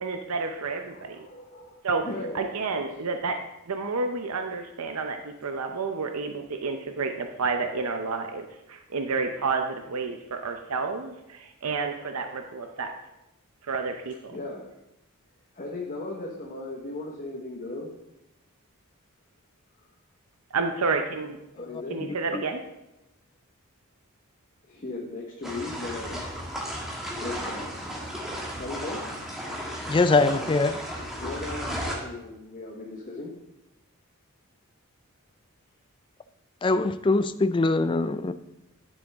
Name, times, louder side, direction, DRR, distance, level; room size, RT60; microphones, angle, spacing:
voice 1, 0.0-1.3 1.8-2.0 2.3-3.4 3.7-12.9 13.6-14.4 20.5-21.4 21.9-22.6, right 4 dB, 85° right, 5 dB, 0.7 m, -30 dB
voice 2, 0.9-2.8 12.0-13.0 14.3-14.6 15.5-17.9 21.5-22.0 24.6-26.1 27.1-27.6 28.6-29.0 31.1-33.3, left 2 dB, 40° left, -2 dB, 1.1 m, -37 dB
voice 3, 22.0-22.4 29.9-30.8 36.6-38.3, left 3 dB, 20° left, 12 dB, 0.3 m, -23 dB
sound 1, 25.4-31.9, equal, ahead, 1.4 m, -34 dB
10.5 x 6.4 x 3.5 m, 0.88 s
head